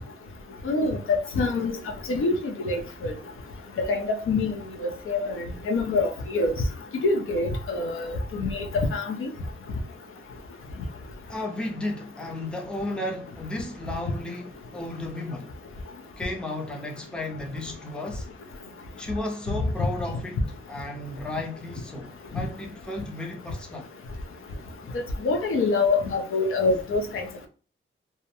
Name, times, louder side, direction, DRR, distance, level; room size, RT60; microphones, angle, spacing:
voice 1, 0.6-1.8 2.1-3.1 3.8-4.5 4.8-6.5 7.0-9.3 25.2-27.2, left 3 dB, 80° left, 0.5 m, -25 dB
voice 2, 11.3-15.5 16.2-18.3 19.0-23.9, left 2 dB, 5° left, 0.4 m, -34 dB
2.3 x 2.1 x 2.8 m
wide cardioid pair, 150°, 21 cm